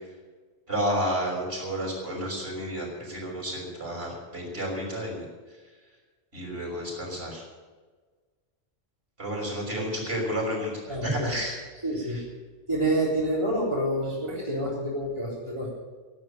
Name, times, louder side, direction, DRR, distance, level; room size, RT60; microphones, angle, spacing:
voice 1, 0.7-5.2 6.3-7.4 9.2-11.5 12.1-12.2, equal, 60° right, -1 dB, 6.5 m, -31 dB
voice 2, 10.9-11.4 11.8-12.2 12.7-15.8, right 1 dB, 25° right, -6 dB, 3.8 m, -28 dB
16.5 x 9.0 x 9.1 m, 1.4 s
omnidirectional pair, 1.2 m